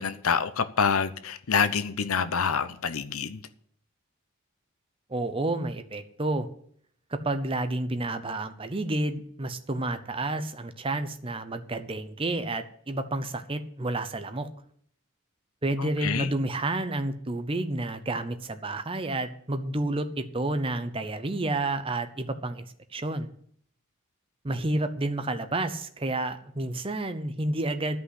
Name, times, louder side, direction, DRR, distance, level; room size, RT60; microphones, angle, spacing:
voice 1, 0.0-3.4 15.8-16.3, left 6 dB, 85° left, 0.8 m, -27 dB
voice 2, 5.1-6.5 7.1-14.5 15.6-22.7 22.9-23.3 24.4-28.0, right 2 dB, 25° right, 0.7 m, -30 dB
12.5 x 5.6 x 8.1 m
head